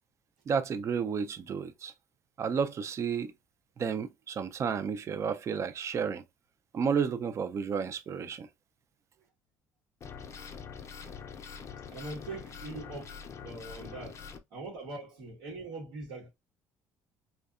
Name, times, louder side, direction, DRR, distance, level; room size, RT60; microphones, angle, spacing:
voice 1, 0.5-1.9 2.4-3.3 3.8-6.2 6.7-8.5, right 6 dB, 40° right, 0.4 m, -31 dB
sound 1, 10.0-14.4, left 6 dB, 40° left, 0.5 m, -44 dB
voice 2, 11.9-16.3, right 3 dB, 80° right, 1.0 m, -42 dB
2.6 x 2.2 x 2.3 m
supercardioid pair, 85°, 8 cm